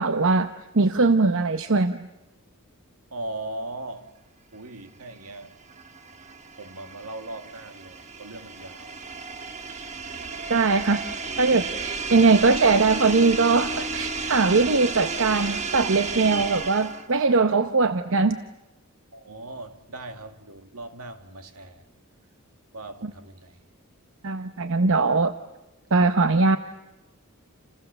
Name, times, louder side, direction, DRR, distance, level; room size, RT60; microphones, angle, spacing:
voice 1, 0.0-2.1 10.5-11.0 11.4-18.4 24.2-25.3 25.9-26.6, right 3 dB, 60° right, 0.9 m, -21 dB
voice 2, 3.1-4.1 4.5-5.6 6.5-9.0 12.1-12.2 19.1-21.8 22.7-23.6, right 2 dB, 80° right, 2.2 m, -39 dB
sound 1, 5.3-17.2, right 4 dB, 30° right, 1.4 m, -33 dB
29.0 x 29.0 x 6.9 m
head